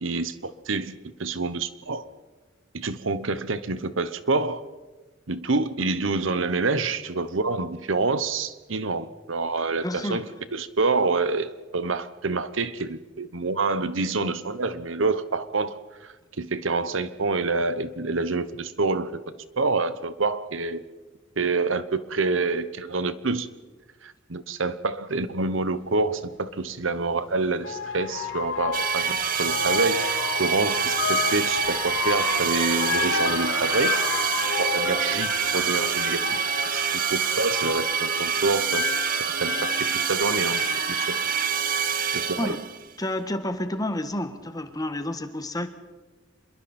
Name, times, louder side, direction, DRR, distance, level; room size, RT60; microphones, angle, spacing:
voice 1, 0.0-0.9 1.2-2.1 2.7-4.6 5.3-10.2 10.5-19.2 19.6-20.8 21.4-23.5 24.0-34.0 34.6-36.2 36.7-38.8 39.4-40.6 40.9-41.2 42.1-42.6, right 3 dB, 75° right, 13 dB, 1.1 m, -27 dB
voice 2, 9.8-10.3 42.4-42.6 43.0-45.7, left 1 dB, 20° left, 9 dB, 1.5 m, -30 dB
sound 1, 25.4-25.5 27.0-42.6, left 4 dB, 75° left, 3.9 m, -30 dB
sound 2, 28.7-42.8, right 8 dB, 45° right, 0.8 m, -27 dB
27.0 x 22.0 x 4.4 m, 1.3 s
head